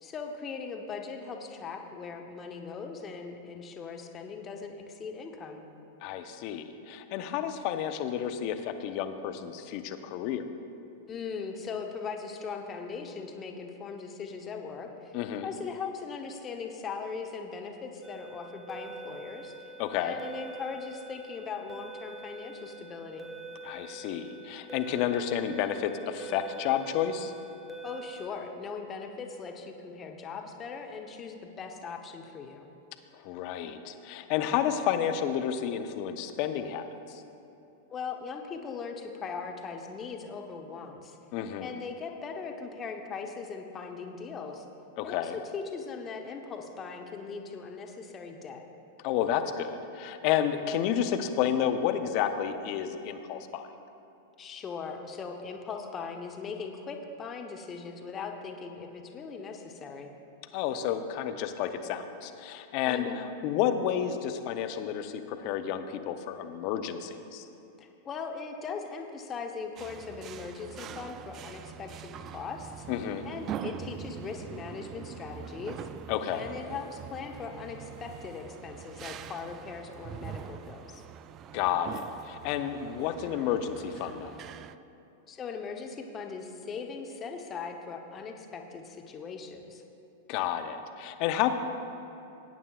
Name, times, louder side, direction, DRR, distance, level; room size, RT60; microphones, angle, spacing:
voice 1, 0.0-5.6 11.1-19.5 19.9-23.3 27.8-32.7 37.9-41.2 41.6-44.7 45.0-48.6 54.4-60.1 62.9-63.2 67.8-72.9 73.2-75.9 76.3-81.0 85.3-89.8, left 5 dB, 30° left, 3 dB, 0.9 m, -39 dB
voice 2, 6.0-10.4 15.1-15.5 19.8-20.2 23.6-27.3 33.1-37.2 41.3-41.7 45.0-45.4 49.0-53.7 60.5-67.4 72.9-73.3 76.1-76.5 81.5-84.3 90.3-91.5, left 9 dB, 50° left, 8 dB, 0.7 m, -31 dB
sound 1, 18.0-28.3, right 2 dB, 5° right, 0.9 m, -45 dB
sound 2, 69.8-84.8, right 9 dB, 35° right, 0.3 m, -43 dB
17.5 x 8.7 x 2.4 m, 2.8 s
hypercardioid pair, 100°, 0 cm